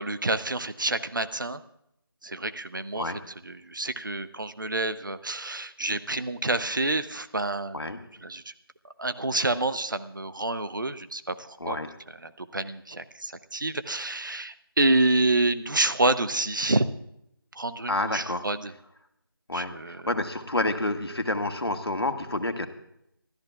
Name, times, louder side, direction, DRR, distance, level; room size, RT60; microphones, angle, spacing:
voice 1, 0.0-1.6 2.2-3.1 3.4-7.9 8.2-8.4 9.0-11.8 12.2-16.8 17.6-18.7 19.5-20.0, right 2 dB, 55° right, 11 dB, 0.8 m, -28 dB
voice 2, 11.6-11.9 17.9-18.5 19.5-22.7, left 2 dB, 85° left, 6 dB, 1.6 m, -29 dB
27.5 x 13.5 x 2.4 m, 0.78 s
figure-of-eight pair, 175°, 13 cm